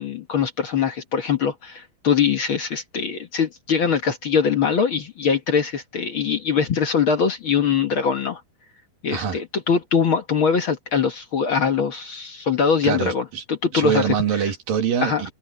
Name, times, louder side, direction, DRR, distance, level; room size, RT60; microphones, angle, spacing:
voice 1, 0.0-8.4 9.0-14.0 14.4-14.5 15.0-15.2, left 6 dB, 55° left, 1.4 m, -22 dB
voice 2, 12.8-13.4 13.7-15.3, right 8 dB, 70° right, 3.9 m, -24 dB
omnidirectional pair, 4.3 m